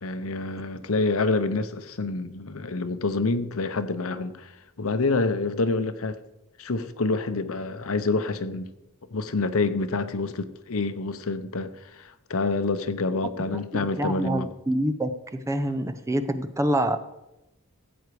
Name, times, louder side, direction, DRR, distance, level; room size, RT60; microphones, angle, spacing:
voice 1, 0.0-6.2 6.6-8.7 9.1-14.5, left 3 dB, 65° left, 0.8 m, -27 dB
voice 2, 13.7-17.0, right 1 dB, 15° right, 0.6 m, -26 dB
15.5 x 8.2 x 4.9 m
head